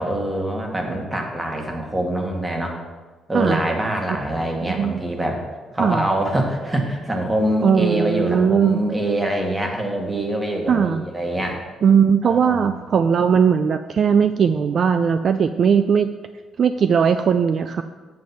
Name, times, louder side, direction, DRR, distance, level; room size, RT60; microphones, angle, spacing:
voice 1, 0.0-2.8 3.3-5.4 5.7-11.6 12.2-12.8, right 1 dB, 15° right, 2 dB, 1.6 m, -24 dB
voice 2, 5.8-6.1 7.6-8.8 10.7-11.0 11.8-16.1 16.6-17.8, right 7 dB, 55° right, 10 dB, 0.4 m, -18 dB
7.6 x 7.3 x 4.4 m, 1.3 s
cardioid pair, 90°, 0 cm